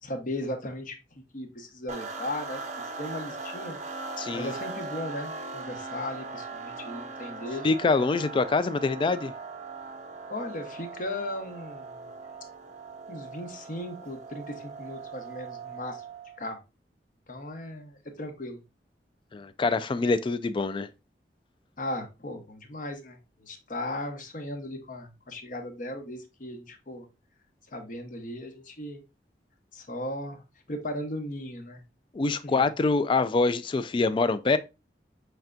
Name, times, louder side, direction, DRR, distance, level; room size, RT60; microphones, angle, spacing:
voice 1, 0.0-3.8 4.3-7.7 10.3-12.0 13.1-16.0 16.4-16.6 17.3-18.6 21.8-27.1 27.7-29.0 29.7-30.4 30.7-31.8 32.4-32.6, left 1 dB, 50° left, 0.9 m, -37 dB
sound 1, 1.9-16.4, right 3 dB, 40° right, 0.5 m, -40 dB
voice 2, 4.2-4.5 7.6-9.3 19.3-20.9 32.1-34.6, left 3 dB, 30° left, 0.3 m, -25 dB
5.8 x 3.3 x 2.4 m
head